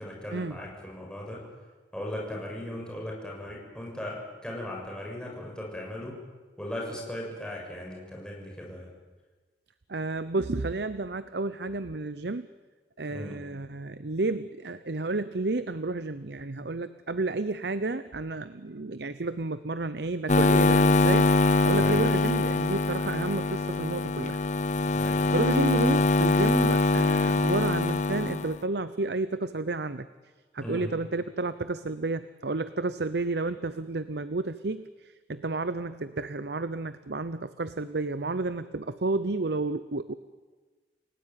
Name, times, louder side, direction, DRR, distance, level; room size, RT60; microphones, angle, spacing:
voice 1, 0.0-1.4 1.9-6.1 6.6-8.9 13.1-13.4 21.7-22.3 24.9-25.4 30.6-30.9, left 1 dB, 5° left, -2 dB, 6.8 m, -38 dB
voice 2, 9.9-12.5 13.0-21.3 21.6-24.4 25.3-30.1 30.5-40.1, right 2 dB, 70° right, 13 dB, 0.8 m, -31 dB
sound 1, 20.3-28.6, left 3 dB, 45° left, 1.3 m, -23 dB
29.0 x 18.0 x 9.5 m, 1.3 s
head